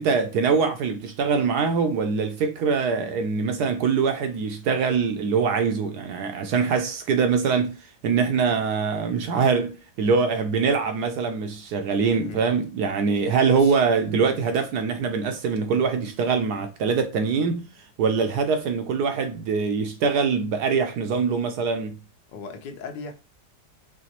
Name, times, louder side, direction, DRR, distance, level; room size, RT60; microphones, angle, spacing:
voice 1, 0.0-17.7 18.0-22.0, right 5 dB, 70° right, 1.0 m, -23 dB
voice 2, 12.0-12.5 13.5-13.8 22.3-23.1, left 5 dB, 70° left, 1.4 m, -37 dB
4.9 x 3.3 x 2.9 m
omnidirectional pair, 2.1 m